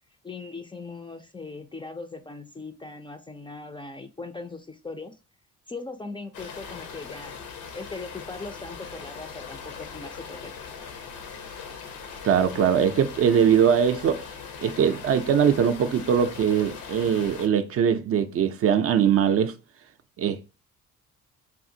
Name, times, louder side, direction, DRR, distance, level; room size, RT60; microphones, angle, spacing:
voice 1, 0.2-5.2 5.7-10.5, left 3 dB, 15° left, 0.3 m, -39 dB
sound 1, 6.3-17.5, left 6 dB, 90° left, 0.7 m, -40 dB
voice 2, 12.2-14.3 14.6-19.5 20.2-20.4, right 8 dB, 50° right, 0.4 m, -21 dB
3.6 x 2.4 x 2.6 m
cardioid pair, 90°, 30 cm